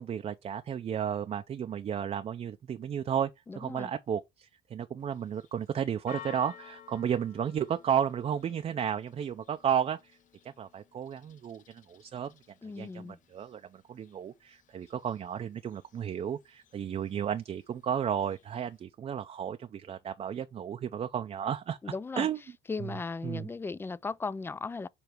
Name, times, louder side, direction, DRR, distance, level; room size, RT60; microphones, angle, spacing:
voice 1, 0.0-10.2 10.4-12.3 12.6-22.4 22.8-22.9 23.2-23.5, right 8 dB, 40° right, 0.5 m, -33 dB
voice 2, 3.5-3.9 12.6-13.2 21.8-22.3 22.7-24.9, left 4 dB, 15° left, 0.3 m, -37 dB
Church bell, 5.0-18.8, left 9 dB, 50° left, 0.7 m, -55 dB
6.9 x 3.3 x 4.5 m
cardioid pair, 110°, 17 cm